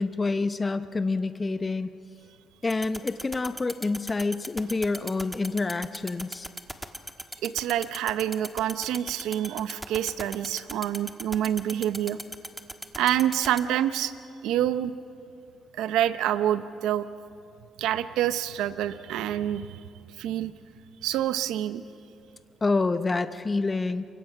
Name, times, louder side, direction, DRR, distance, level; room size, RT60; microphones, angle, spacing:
voice 1, 0.0-1.9 2.6-6.5 22.6-24.0, left 3 dB, 25° left, 11 dB, 0.8 m, -27 dB
sound 1, 2.7-13.6, right 1 dB, 5° right, 1.5 m, -36 dB
voice 2, 7.4-12.2 13.0-14.1 14.4-14.9 15.8-17.1 17.8-19.8 20.2-20.5 21.0-21.8, right 11 dB, 90° right, 12 dB, 0.7 m, -27 dB
27.5 x 23.5 x 5.9 m, 2.5 s
cardioid pair, 90°, 0 cm